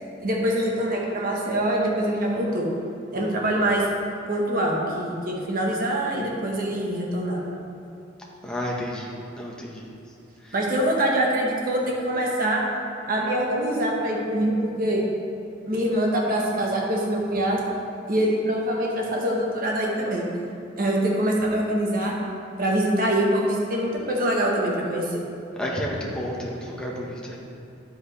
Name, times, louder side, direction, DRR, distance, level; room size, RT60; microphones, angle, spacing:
voice 1, 0.2-2.7 3.1-3.9 4.3-7.4 10.5-12.6 13.1-15.1 15.7-17.6 18.1-20.3 20.8-22.2 22.6-25.2, right 1 dB, 45° right, -2 dB, 1.3 m, -24 dB
voice 2, 8.4-9.9 25.6-27.4, equal, 5° left, -4 dB, 1.1 m, -31 dB
10.0 x 7.8 x 3.3 m, 2.5 s
head